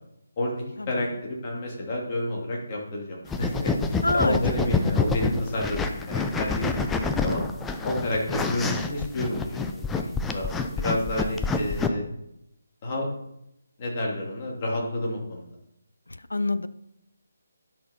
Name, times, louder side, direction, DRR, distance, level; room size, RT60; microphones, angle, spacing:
voice 1, 0.9-7.4 7.8-12.0 12.8-13.1 13.8-15.5, left 1 dB, 30° left, -2 dB, 2.7 m, -30 dB
sound 1, 3.2-11.9, left 4 dB, 10° left, 0.5 m, -27 dB
voice 2, 4.0-4.4 16.3-16.7, left 2 dB, 80° left, 13 dB, 0.6 m, -24 dB
10.5 x 6.2 x 4.4 m, 0.81 s
figure-of-eight pair, 150°, 0 cm